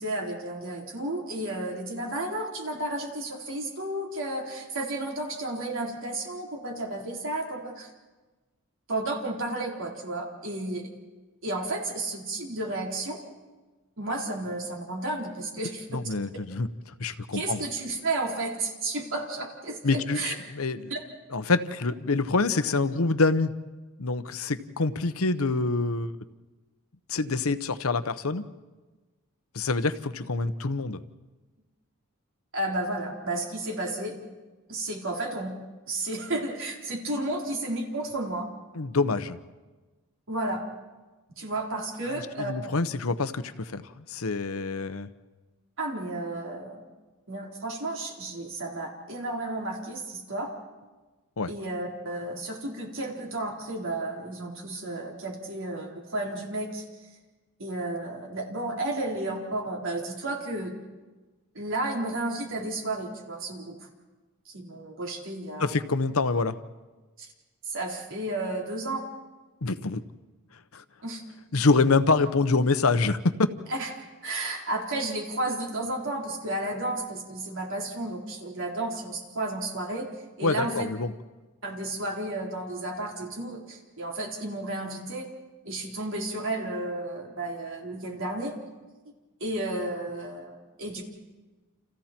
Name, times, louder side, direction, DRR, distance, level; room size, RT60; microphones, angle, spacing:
voice 1, 0.0-7.9 8.9-10.9 11.4-13.2 14.0-16.0 17.3-20.3 20.9-21.0 32.5-34.2 34.7-35.5 35.9-38.5 40.3-40.6 41.4-42.5 45.8-46.9 47.3-50.5 51.5-56.8 57.6-60.7 61.5-63.8 64.5-65.7 67.2-67.3 67.6-69.0 71.0-71.2 73.7-73.9 74.2-80.1 80.4-80.9 81.6-85.3 85.6-88.6 89.4-91.0, right 2 dB, 60° right, 0 dB, 4.0 m, -32 dB
voice 2, 15.9-17.6 19.8-20.9 21.3-23.5 24.0-26.1 27.1-28.4 29.5-31.0 38.7-39.4 42.0-45.1 51.4-51.5 65.6-66.6 69.6-70.0 70.7-70.8 71.5-73.3 80.4-81.1, left 3 dB, 70° left, 11 dB, 1.0 m, -26 dB
30.0 x 28.5 x 4.5 m, 1.3 s
head